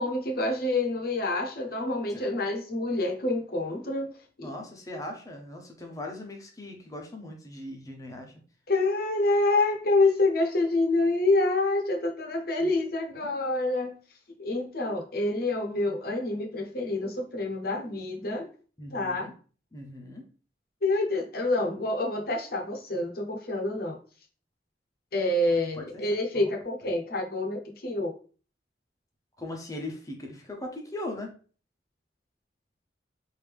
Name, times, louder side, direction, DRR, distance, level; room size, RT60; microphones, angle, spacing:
voice 1, 0.0-4.1 4.4-4.5 8.7-14.0 14.4-18.5 18.9-19.3 20.8-24.0 25.1-28.1, left 2 dB, 55° left, 2 dB, 0.8 m, -27 dB
voice 2, 4.4-8.3 12.6-12.7 13.2-13.3 18.8-19.3 19.7-20.2 25.5-26.0 26.3-26.5 29.4-31.3, left 1 dB, 20° left, 2 dB, 0.8 m, -39 dB
3.4 x 2.7 x 3.3 m, 0.39 s
head